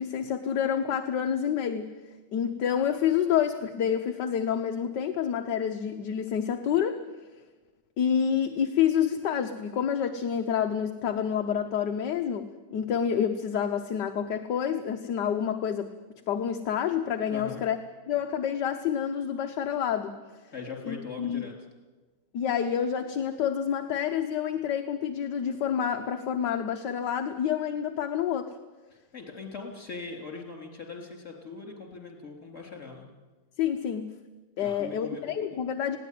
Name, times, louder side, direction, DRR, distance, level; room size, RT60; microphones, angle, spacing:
voice 1, 0.0-1.9 2.3-7.0 8.0-15.9 16.3-17.8 18.1-20.1 20.9-21.5 22.3-28.5 33.6-34.1 34.6-36.0, left 8 dB, 65° left, 6 dB, 1.5 m, -28 dB
voice 2, 17.3-17.7 20.5-21.5 28.9-33.1 34.6-35.6, left 4 dB, 35° left, 2 dB, 3.9 m, -41 dB
20.0 x 16.5 x 9.3 m, 1.2 s
omnidirectional pair, 2.1 m